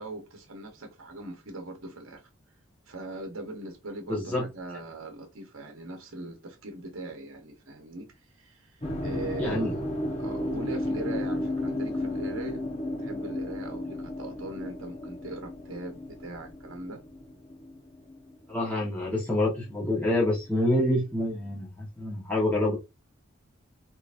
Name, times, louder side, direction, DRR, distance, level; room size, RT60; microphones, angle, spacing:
voice 1, 0.0-2.2 2.9-8.7 9.0-9.8 10.2-12.6 13.0-17.0, right 2 dB, 75° right, 0.9 m, -40 dB
voice 2, 4.1-4.4 9.4-9.8 18.5-22.7, left 1 dB, 10° left, 1.2 m, -27 dB
sound 1, 8.8-19.0, left 1 dB, 30° left, 0.9 m, -33 dB
3.8 x 3.0 x 2.5 m
head